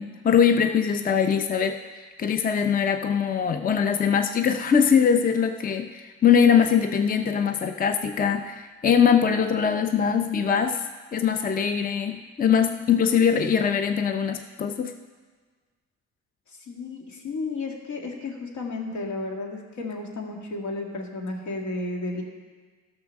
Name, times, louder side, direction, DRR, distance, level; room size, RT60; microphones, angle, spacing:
voice 1, 0.0-10.8 11.1-14.9, left 7 dB, 30° left, 7 dB, 0.5 m, -22 dB
voice 2, 16.7-22.2, left 3 dB, 75° left, 1 dB, 2.0 m, -33 dB
12.5 x 6.2 x 6.4 m, 1.5 s
cardioid pair, 90°, 30 cm